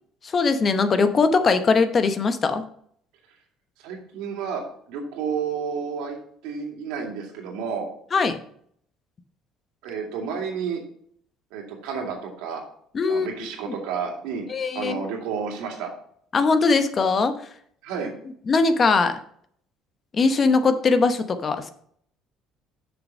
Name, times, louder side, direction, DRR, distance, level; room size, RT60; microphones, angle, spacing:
voice 1, 0.2-2.6 8.1-8.4 12.9-13.3 13.6-13.8 14.5-15.0 16.3-17.4 18.5-19.2 20.1-21.7, left 4 dB, 30° left, 9 dB, 0.9 m, -20 dB
voice 2, 3.8-6.2 6.4-7.9 9.8-10.8 11.5-12.6 13.1-14.5 14.7-15.9 17.8-18.1, right 6 dB, 90° right, 2 dB, 2.3 m, -31 dB
6.7 x 6.2 x 5.4 m, 0.63 s
cardioid pair, 125°, 0 cm